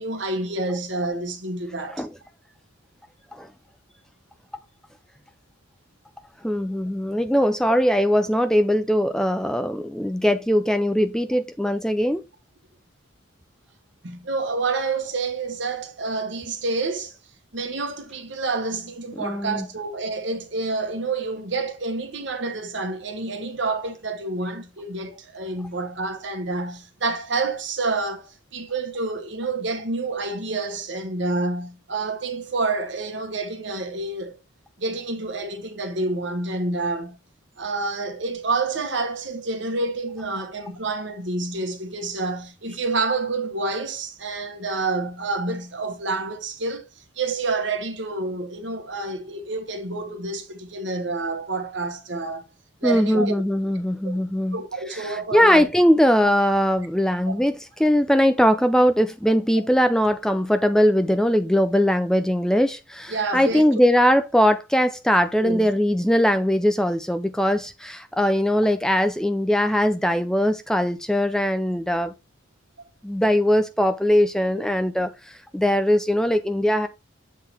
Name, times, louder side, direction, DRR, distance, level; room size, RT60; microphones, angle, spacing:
voice 1, 0.0-2.1 14.0-17.1 17.5-34.4 34.8-37.2 37.6-52.5 52.8-53.3 54.0-54.2 54.5-55.6 57.3-57.4 63.1-63.6 65.4-65.7 72.8-72.9, right 3 dB, 60° right, 1.3 m, -28 dB
voice 2, 6.4-12.2 19.2-19.7 52.8-54.6 54.9-72.1 73.0-76.9, equal, 5° left, 0.4 m, -21 dB
7.5 x 3.9 x 4.3 m
head